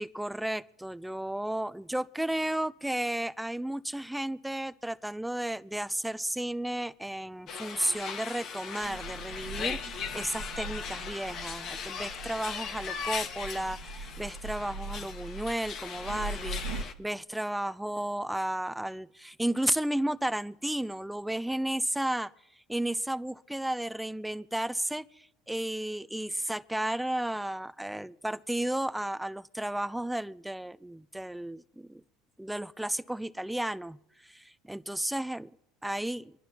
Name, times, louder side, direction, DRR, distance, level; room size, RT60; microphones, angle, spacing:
voice 1, 0.0-22.3 22.7-32.0 32.4-34.0 34.2-35.5 35.8-36.3, right 1 dB, 5° right, 0.4 m, -33 dB
sound 1, 7.5-16.9, left 6 dB, 50° left, 1.2 m, -39 dB
sound 2, 8.8-16.8, right 2 dB, 80° right, 1.0 m, -41 dB
25.5 x 11.0 x 2.9 m
supercardioid pair, 95°, 0 cm